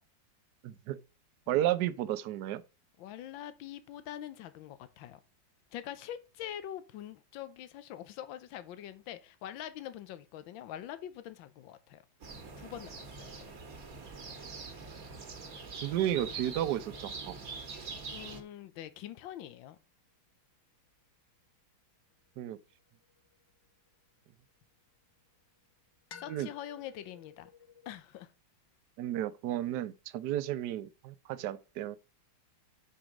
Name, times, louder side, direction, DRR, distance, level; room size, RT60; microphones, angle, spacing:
voice 1, 0.6-1.0 1.5-2.6 15.8-17.3 22.4-22.6 26.3-26.5 29.0-32.0, right 12 dB, 70° right, 1.2 m, -32 dB
voice 2, 3.0-5.2 5.7-12.0 12.6-13.6 18.1-19.8 26.2-27.5 27.9-28.3, left 11 dB, 85° left, 1.5 m, -44 dB
sound 1, 12.2-18.4, right 4 dB, 50° right, 1.9 m, -44 dB
sound 2, 13.6-17.9 22.2-24.7 26.1-28.0, left 7 dB, 70° left, 1.8 m, -57 dB
8.7 x 4.7 x 5.2 m
omnidirectional pair, 2.1 m